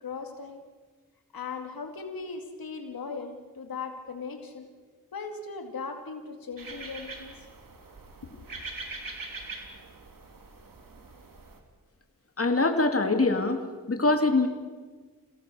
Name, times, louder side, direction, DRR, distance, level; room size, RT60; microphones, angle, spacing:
voice 1, 0.0-0.6 1.3-4.7 5.1-7.5 8.2-8.4, left 4 dB, 90° left, 4 dB, 2.2 m, -38 dB
sound 1, 6.6-11.6, right 3 dB, 70° right, 3.2 m, -43 dB
voice 2, 12.4-14.5, left 3 dB, 40° left, 5 dB, 2.6 m, -24 dB
28.0 x 17.5 x 6.9 m, 1.4 s
cardioid pair, 50°, 34 cm